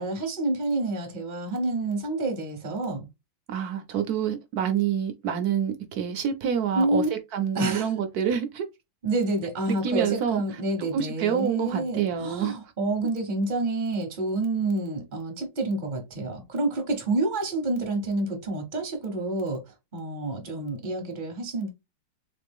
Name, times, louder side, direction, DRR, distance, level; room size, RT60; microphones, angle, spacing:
voice 1, 0.0-3.1 6.8-7.1 7.5-7.9 9.0-19.6 19.9-21.7, right 2 dB, 40° right, 0.7 m, -28 dB
voice 2, 3.5-8.7 9.7-10.4 10.9-12.6, right 8 dB, 65° right, 0.9 m, -27 dB
3.6 x 3.3 x 3.5 m
omnidirectional pair, 2.2 m